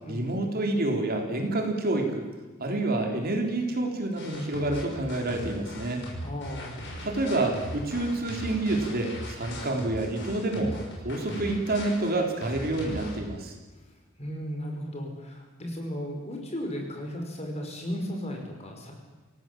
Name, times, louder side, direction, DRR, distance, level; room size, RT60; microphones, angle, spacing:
voice 1, 0.1-2.3 2.6-6.0 7.0-10.7 11.0-13.5, right 2 dB, 45° right, 3 dB, 3.6 m, -28 dB
sound 1, 4.2-13.2, equal, 60° left, 6.5 m, -39 dB
voice 2, 6.2-6.8 14.2-18.9, equal, 30° left, 2 dB, 5.4 m, -35 dB
27.0 x 17.5 x 7.6 m, 1.2 s
head